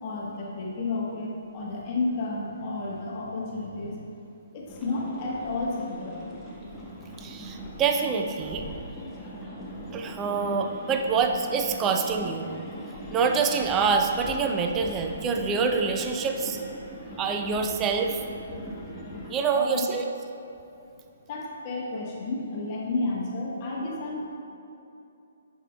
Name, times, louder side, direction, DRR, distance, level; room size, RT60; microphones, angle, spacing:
voice 1, 0.0-4.0 4.5-6.3 9.1-9.3 19.5-19.8 21.3-24.2, left 3 dB, 35° left, -4 dB, 1.1 m, -31 dB
sound 1, 4.7-19.3, equal, 10° left, 0.9 m, -40 dB
voice 2, 7.2-8.6 9.9-12.5 13.1-16.6 17.2-18.2 19.3-20.0, right 5 dB, 20° right, 4 dB, 0.4 m, -26 dB
8.9 x 6.4 x 2.2 m, 2.7 s
figure-of-eight pair, 130°, 0 cm